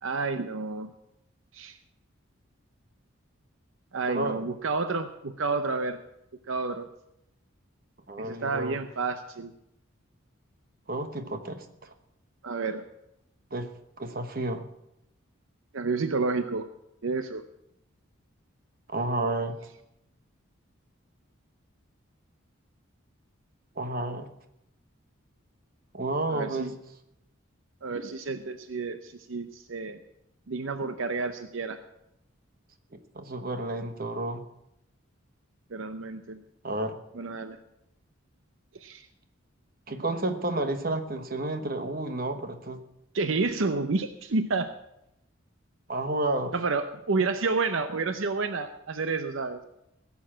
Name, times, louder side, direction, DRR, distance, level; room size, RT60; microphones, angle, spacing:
voice 1, 0.0-0.9 1.5-1.8 3.9-6.0 6.5-6.9 8.2-9.5 12.4-12.9 15.7-16.7 17.0-17.4 26.3-26.7 27.8-30.0 30.5-31.8 35.7-36.4 37.1-37.6 38.7-39.1 43.1-44.7 46.5-49.6, right 3 dB, 70° right, 8 dB, 0.7 m, -30 dB
voice 2, 4.1-4.4 8.1-8.8 10.9-11.9 13.5-13.7 14.0-14.6 18.9-19.6 23.8-24.3 25.9-26.7 33.1-34.4 36.6-37.0 39.9-42.8 45.9-46.5, right 2 dB, 45° right, 8 dB, 1.2 m, -31 dB
16.5 x 7.2 x 7.4 m, 0.83 s
head